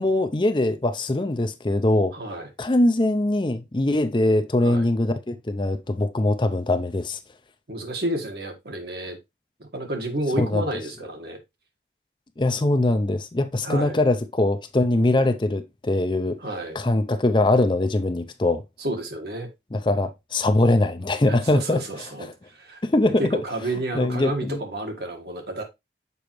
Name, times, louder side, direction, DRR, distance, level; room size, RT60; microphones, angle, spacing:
voice 1, 0.0-2.1 2.6-7.2 10.4-10.7 12.4-16.4 16.7-18.6 19.7-21.8 22.2-22.3 22.8-23.3 23.9-24.6, left 2 dB, 25° left, 0.5 m, -22 dB
voice 2, 2.1-2.5 4.6-4.9 7.7-9.2 9.6-11.4 13.6-14.0 16.4-16.8 18.8-19.5 21.3-22.8 23.0-25.6, right 1 dB, 65° right, 1.7 m, -30 dB
6.8 x 5.0 x 3.1 m
head